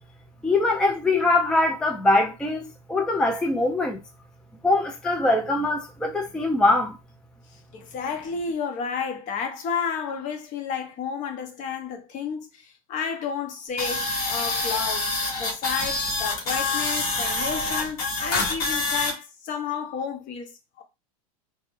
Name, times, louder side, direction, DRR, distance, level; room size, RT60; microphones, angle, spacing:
voice 1, 0.4-4.0 4.6-7.0, left 2 dB, 5° left, 0.4 m, -22 dB
voice 2, 7.7-15.1 15.4-20.8, left 6 dB, 45° left, 0.8 m, -31 dB
sound 1, 13.8-19.1, left 3 dB, 75° left, 1.4 m, -26 dB
3.3 x 2.2 x 3.0 m
hypercardioid pair, 105°, 19 cm